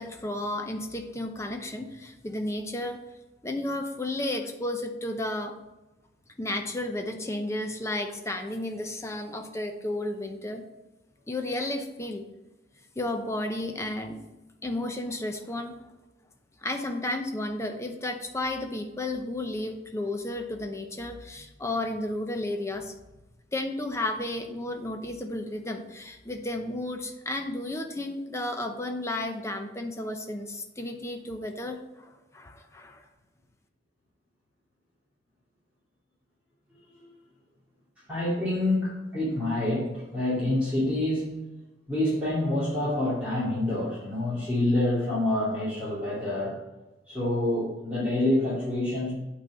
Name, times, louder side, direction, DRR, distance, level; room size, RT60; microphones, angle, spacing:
voice 1, 0.0-3.0 3.4-5.5 6.4-10.6 11.3-12.2 13.0-14.2 14.6-15.7 16.6-22.9 23.5-33.0, left 1 dB, 15° left, 5 dB, 0.8 m, -33 dB
voice 2, 38.1-41.4 41.9-46.6 47.1-49.1, left 1 dB, 10° right, -11 dB, 2.4 m, -27 dB
8.6 x 4.0 x 6.0 m, 1.0 s
head